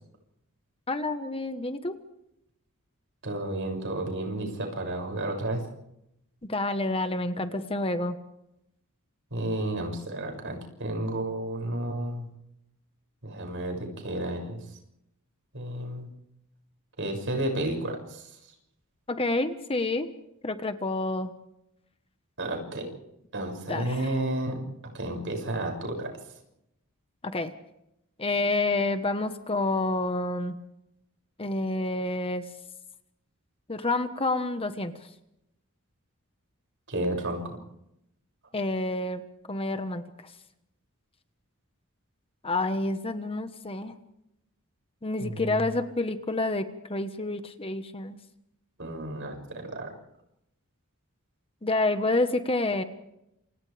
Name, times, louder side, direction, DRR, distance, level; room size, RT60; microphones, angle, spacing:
voice 1, 0.9-2.0 6.4-8.2 19.1-20.1 20.4-21.3 23.7-24.2 27.2-27.5 28.2-30.6 31.4-32.5 33.7-34.9 38.5-39.2 39.5-40.3 42.4-43.9 45.0-48.2 51.6-52.8, left 2 dB, 25° left, 8 dB, 1.3 m, -28 dB
voice 2, 3.2-5.6 9.3-12.3 13.2-14.6 15.5-16.1 17.0-18.3 22.4-22.9 23.3-24.6 24.9-26.1 36.9-37.6 45.2-45.5 48.8-49.9, right 1 dB, 60° right, 2 dB, 6.8 m, -32 dB
28.5 x 27.5 x 3.5 m, 0.82 s
head